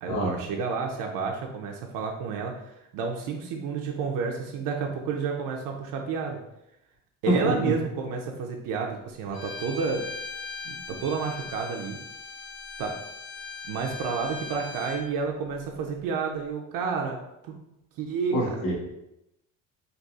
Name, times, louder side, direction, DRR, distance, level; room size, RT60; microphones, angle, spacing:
voice 1, 0.0-6.4 7.2-10.1 10.6-12.0 12.8-13.0 13.7-17.2 17.4-17.6 18.0-18.4, right 5 dB, 60° right, 1 dB, 0.5 m, -30 dB
Bowed string instrument, 9.3-15.1, left 4 dB, 80° left, 0.9 m, -39 dB
voice 2, 18.3-18.7, equal, 55° left, -3 dB, 1.1 m, -25 dB
3.9 x 2.3 x 2.3 m, 0.84 s
cardioid pair, 130°, 37 cm